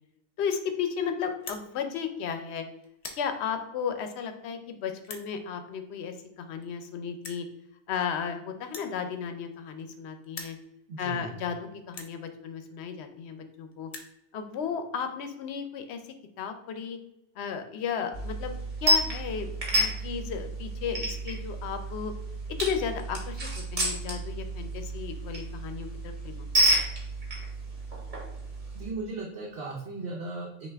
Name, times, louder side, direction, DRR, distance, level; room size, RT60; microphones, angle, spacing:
voice 1, 0.4-2.6 3.1-7.5 7.9-10.6 11.0-13.9 14.3-17.0 17.4-18.5 18.8-22.1 22.6-26.5, left 7 dB, 85° left, 8 dB, 0.9 m, -34 dB
sound 1, 1.4-1.6 2.3-2.5 2.8-3.2 4.0-4.1 5.0-5.3 6.3-6.4 6.6-6.7 7.2-7.5 8.6-10.0 10.2-10.6 11.3-11.4 11.9-12.1 13.1-13.2 13.4-13.5 13.7-14.1, left 3 dB, 45° left, 0.6 m, -43 dB
voice 2, 10.9-11.3 28.7-30.7, right 3 dB, 70° right, -2 dB, 0.9 m, -37 dB
sound 2, 18.1-28.9, right 1 dB, 45° right, 1.2 m, -30 dB
5.5 x 2.5 x 3.4 m, 0.85 s
omnidirectional pair, 1.1 m